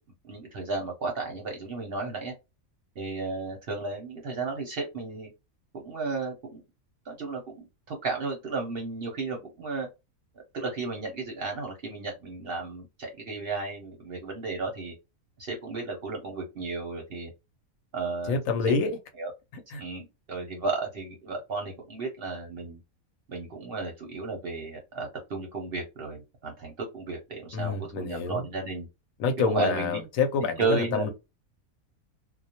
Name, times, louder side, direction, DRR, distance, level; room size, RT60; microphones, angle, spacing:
voice 1, 0.3-2.3 3.0-5.3 5.7-6.6 7.1-9.9 10.5-14.9 15.4-17.3 17.9-18.4 18.7-18.8 19.2-19.3 19.8-22.8 23.3-28.9 29.4-30.0 30.6-31.1, right 4 dB, 55° right, 0.7 m, -33 dB
voice 2, 18.3-18.9 19.7-19.8 27.5-28.5 29.2-31.1, left 5 dB, 75° left, 0.9 m, -27 dB
2.3 x 2.1 x 2.7 m
omnidirectional pair, 1.5 m